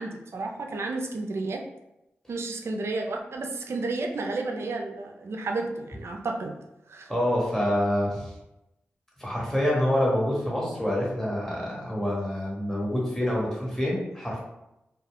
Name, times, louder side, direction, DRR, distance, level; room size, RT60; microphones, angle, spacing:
voice 1, 0.0-1.6 2.3-6.5 6.9-7.1, right 3 dB, 70° right, 2 dB, 0.4 m, -32 dB
voice 2, 7.1-8.3 9.2-14.4, left 1 dB, 10° left, -5 dB, 1.4 m, -26 dB
2.3 x 2.2 x 3.5 m, 0.90 s
cardioid pair, 45°, 5 cm